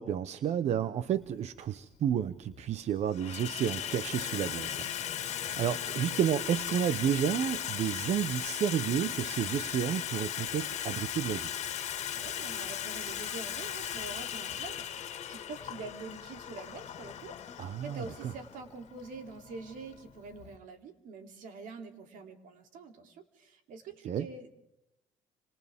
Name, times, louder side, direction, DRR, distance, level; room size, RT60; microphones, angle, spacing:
voice 1, 0.0-5.2 5.4-11.5 17.6-18.3 24.0-24.3, right 9 dB, 55° right, 13 dB, 0.9 m, -31 dB
Water tap faucet / Sink (filling or washing), 1.2-1.3 2.2-2.7 3.0-20.6, left 10 dB, 55° left, 2.0 m, -37 dB
voice 2, 12.1-24.5, right 4 dB, 80° right, 6 dB, 3.2 m, -45 dB
30.0 x 26.5 x 3.6 m, 0.86 s
cardioid pair, 115°, 14 cm